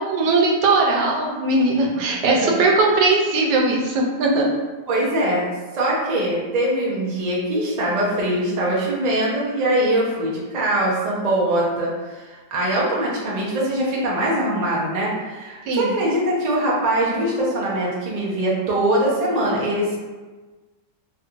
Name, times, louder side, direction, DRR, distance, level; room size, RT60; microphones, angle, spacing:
voice 1, 0.0-4.5 15.6-15.9, right 2 dB, 85° right, -1 dB, 1.3 m, -19 dB
voice 2, 2.3-2.7 4.9-5.5 5.7-20.0, right 1 dB, 60° right, -5 dB, 0.4 m, -22 dB
3.2 x 2.9 x 2.4 m, 1.3 s
omnidirectional pair, 1.8 m